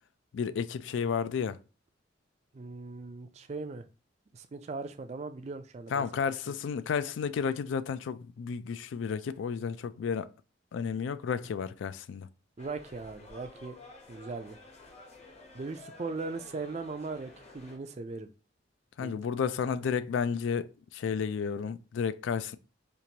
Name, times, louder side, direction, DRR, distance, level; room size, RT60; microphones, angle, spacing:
voice 1, 0.3-1.6 5.9-10.3 10.7-12.3 19.0-22.6, left 6 dB, 80° left, 0.3 m, -32 dB
voice 2, 2.5-3.9 4.3-6.0 12.6-13.8 14.1-14.6 15.5-18.3 19.0-19.3, right 3 dB, 35° right, 0.4 m, -39 dB
sound 1, 12.6-17.8, left 2 dB, 35° left, 0.8 m, -52 dB
4.5 x 2.5 x 2.8 m
head